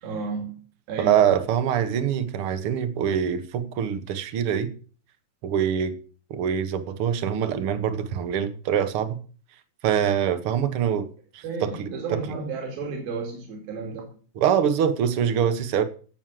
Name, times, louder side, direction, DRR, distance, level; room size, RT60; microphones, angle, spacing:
voice 1, 0.0-0.5 0.9-1.2 11.4-14.1, right 4 dB, 75° right, 4.5 m, -32 dB
voice 2, 1.0-4.7 5.4-5.9 6.3-9.2 9.8-11.1 11.3-11.9 14.4-15.8, right 8 dB, 60° right, 1.5 m, -24 dB
16.5 x 6.3 x 7.7 m
omnidirectional pair, 4.3 m